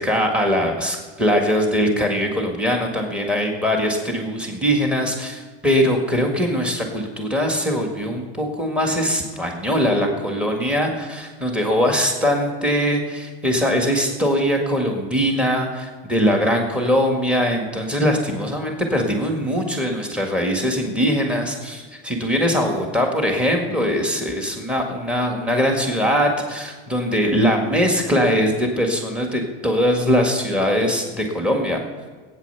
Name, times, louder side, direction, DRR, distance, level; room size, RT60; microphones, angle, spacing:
voice 1, 0.0-31.8, equal, 5° right, 2 dB, 1.8 m, -21 dB
17.0 x 9.1 x 6.9 m, 1.4 s
supercardioid pair, 160°, 30 cm